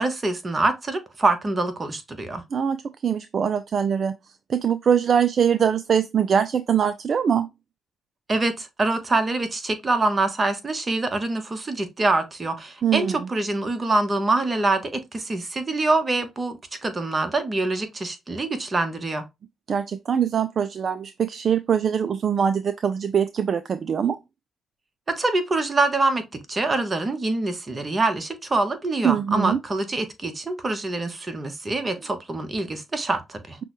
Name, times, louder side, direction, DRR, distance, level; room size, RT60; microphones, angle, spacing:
voice 1, 0.0-2.4 8.3-19.3 25.1-33.6, right 2 dB, 35° right, 1.1 m, -25 dB
voice 2, 2.5-4.1 4.5-7.5 12.8-13.3 19.7-24.2 29.0-29.6, right 7 dB, 55° right, 0.3 m, -22 dB
5.9 x 2.2 x 3.0 m
supercardioid pair, 55°, 0 cm